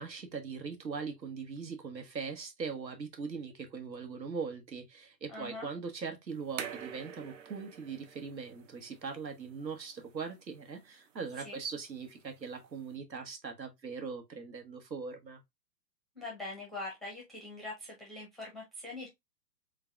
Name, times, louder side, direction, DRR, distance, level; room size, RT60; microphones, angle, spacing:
voice 1, 0.0-15.4, right 5 dB, 85° right, 1.5 m, -40 dB
voice 2, 5.3-5.7 11.4-11.6 16.1-19.1, left 2 dB, ahead, 0.6 m, -43 dB
sound 1, 6.3-13.0, right 8 dB, 50° right, 0.9 m, -48 dB
4.0 x 3.8 x 2.4 m
hypercardioid pair, 130°, 50 cm